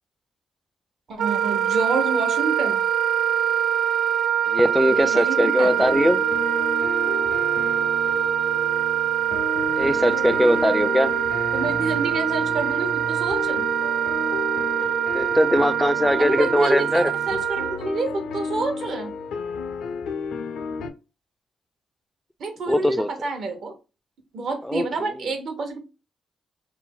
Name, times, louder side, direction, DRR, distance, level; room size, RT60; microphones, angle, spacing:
voice 1, 1.1-2.8 5.0-5.7 11.5-13.6 16.2-19.1 22.4-23.7 24.3-25.8, right 3 dB, 65° right, 0.8 m, -28 dB
Wind instrument woodwind instrument, 1.2-17.8, right 9 dB, 80° right, 0.4 m, -24 dB
voice 2, 4.5-6.2 9.8-11.1 15.1-17.1 22.7-23.1 24.6-25.1, left 1 dB, 5° left, 0.3 m, -20 dB
sound 1, 5.6-20.9, left 4 dB, 80° left, 0.5 m, -32 dB
2.5 x 2.1 x 3.7 m
cardioid pair, 80°, 0 cm